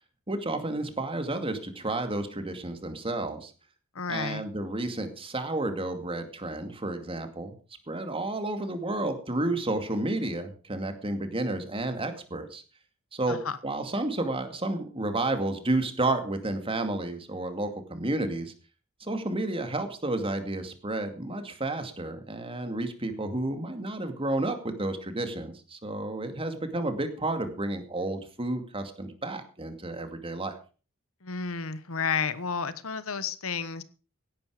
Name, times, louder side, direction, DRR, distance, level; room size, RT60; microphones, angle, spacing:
voice 1, 0.3-3.5 4.1-7.5 7.9-12.6 13.1-13.4 13.6-18.5 19.0-30.5, right 2 dB, 25° right, 7 dB, 2.4 m, -31 dB
voice 2, 3.9-4.4 13.3-13.6 31.2-33.8, left 5 dB, 80° left, 15 dB, 1.2 m, -31 dB
16.5 x 11.0 x 5.0 m, 0.37 s
head